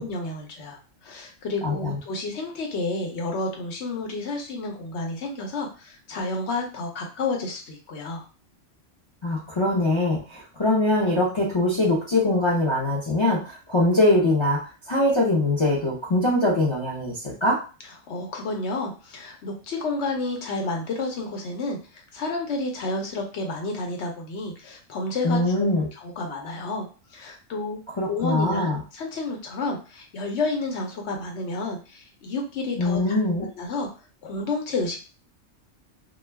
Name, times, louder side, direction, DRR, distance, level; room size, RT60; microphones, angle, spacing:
voice 1, 0.0-8.2 18.1-21.8 22.1-25.4 26.0-26.9 27.1-33.9 34.2-35.0, left 3 dB, 65° left, 2 dB, 1.0 m, -30 dB
voice 2, 1.6-2.0 9.2-14.6 14.9-17.6 25.2-25.9 28.0-28.8 32.8-33.4, left 1 dB, 30° left, -5 dB, 0.6 m, -22 dB
2.3 x 2.3 x 3.3 m, 0.34 s
omnidirectional pair, 1.3 m